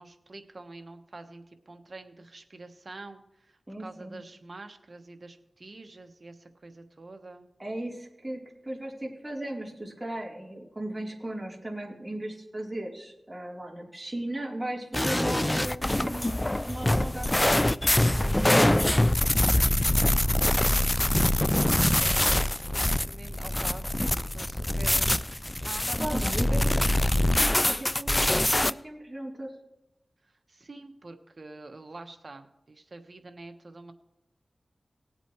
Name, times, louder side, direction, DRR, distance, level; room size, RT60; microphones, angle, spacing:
voice 1, 0.0-7.5 18.0-18.8 21.8-27.4 30.2-33.9, right 2 dB, 55° right, 6 dB, 1.3 m, -47 dB
voice 2, 3.7-4.2 7.6-17.3 18.2-18.8 26.0-26.8 27.6-29.5, right 1 dB, 20° right, -1 dB, 3.5 m, -36 dB
sound 1, 14.9-28.7, left 1 dB, 20° left, 0.4 m, -24 dB
19.5 x 8.0 x 3.1 m, 0.89 s
cardioid pair, 50°, 0 cm